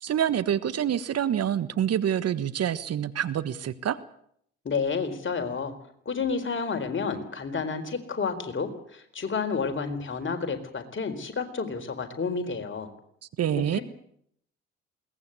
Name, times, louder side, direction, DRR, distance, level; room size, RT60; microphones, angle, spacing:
voice 1, 0.0-4.0 13.4-13.8, right 9 dB, 50° right, 14 dB, 1.3 m, -26 dB
voice 2, 4.6-5.7 6.1-12.9 13.7-13.8, left 5 dB, 35° left, 6 dB, 4.2 m, -30 dB
22.0 x 18.5 x 8.2 m, 0.69 s
figure-of-eight pair, 45°, 32 cm